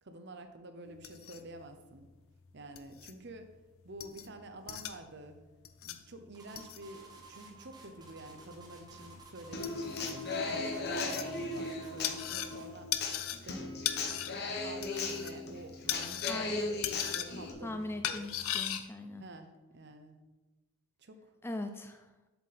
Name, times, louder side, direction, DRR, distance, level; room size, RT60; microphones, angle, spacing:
voice 1, 0.0-2.1 2.5-3.5 3.8-5.4 5.8-13.8 14.6-18.3 19.2-20.2 21.0-21.2, right 1 dB, 50° right, 8 dB, 0.8 m, -49 dB
sound 1, 0.8-18.8, left 11 dB, 70° left, 0.6 m, -40 dB
sound 2, 6.3-12.8, right 4 dB, 20° right, 1.1 m, -54 dB
Human voice / Acoustic guitar, 9.5-17.5, left 3 dB, 45° left, 1.1 m, -37 dB
voice 2, 16.3-16.8 17.6-19.2 21.4-22.1, left 1 dB, 10° left, 7 dB, 0.3 m, -40 dB
7.6 x 7.1 x 4.2 m, 1.1 s
head